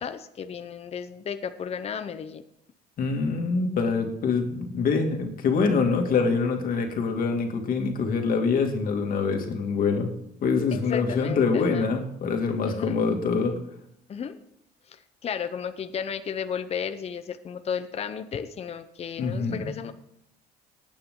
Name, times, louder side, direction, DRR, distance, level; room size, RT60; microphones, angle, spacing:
voice 1, 0.0-2.4 10.7-11.9 12.6-13.0 14.1-14.4 14.9-19.9, left 7 dB, 35° left, 9 dB, 0.8 m, -34 dB
voice 2, 3.0-10.1 10.4-13.6 19.2-19.7, left 4 dB, 55° left, 3 dB, 2.5 m, -25 dB
19.0 x 8.7 x 3.8 m, 0.77 s
cardioid pair, 110°, 17 cm